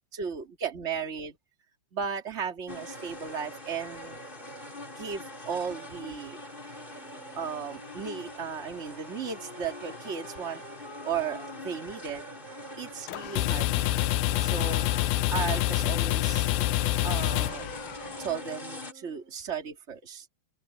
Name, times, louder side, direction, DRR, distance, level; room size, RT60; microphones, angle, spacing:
voice 1, 0.1-1.4 1.9-4.2 5.0-6.4 7.4-10.6 11.0-12.3 12.8-14.9 15.3-16.5 17.0-17.7 18.2-20.3, right 7 dB, 20° right, 2.1 m, -35 dB
sound 1, 2.7-18.9, left 1 dB, 15° left, 3.8 m, -43 dB
Wind instrument woodwind instrument, 6.9-12.8 13.5-19.3, equal, 75° right, 9.1 m, -49 dB
sound 2, 13.1-18.3, left 16 dB, 90° left, 2.6 m, -27 dB
open air
omnidirectional pair, 4.2 m